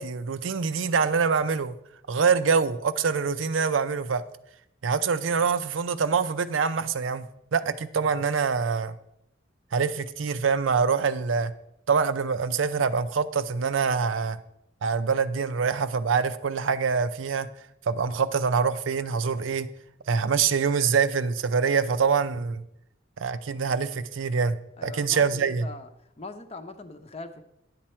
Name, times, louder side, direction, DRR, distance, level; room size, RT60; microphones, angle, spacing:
voice 1, 0.0-1.7 2.1-4.2 4.8-7.3 7.5-9.0 9.7-11.5 11.9-14.4 14.8-17.5 17.9-19.7 20.1-22.6 23.2-25.7, right 5 dB, 85° right, 12 dB, 0.5 m, -25 dB
voice 2, 24.8-25.9 26.2-27.4, left 3 dB, 30° left, 7 dB, 0.7 m, -41 dB
10.5 x 7.4 x 4.4 m, 0.80 s
head